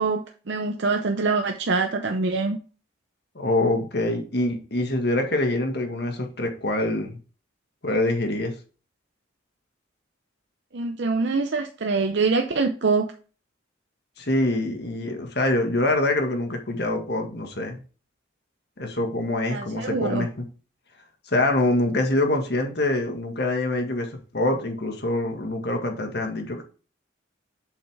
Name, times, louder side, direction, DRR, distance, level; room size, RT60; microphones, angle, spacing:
voice 1, 0.0-2.6 10.7-13.1 19.5-20.3, right 4 dB, 65° right, 5 dB, 0.7 m, -24 dB
voice 2, 3.3-7.2 7.8-8.5 14.2-17.8 18.8-20.4 21.3-24.1 24.3-26.6, left 2 dB, 55° left, 3 dB, 1.7 m, -25 dB
7.4 x 5.5 x 3.4 m, 0.37 s
head